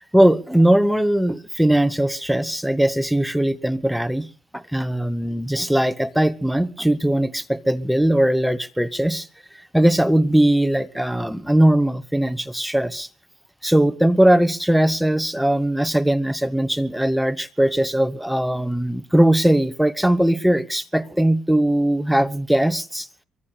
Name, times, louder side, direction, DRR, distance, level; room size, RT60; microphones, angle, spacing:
voice 1, 0.1-4.3 4.5-9.3 9.7-13.1 13.6-23.1, right 1 dB, ahead, 1.0 m, -19 dB
23.5 x 9.6 x 6.5 m
cardioid pair, 90°, 0 cm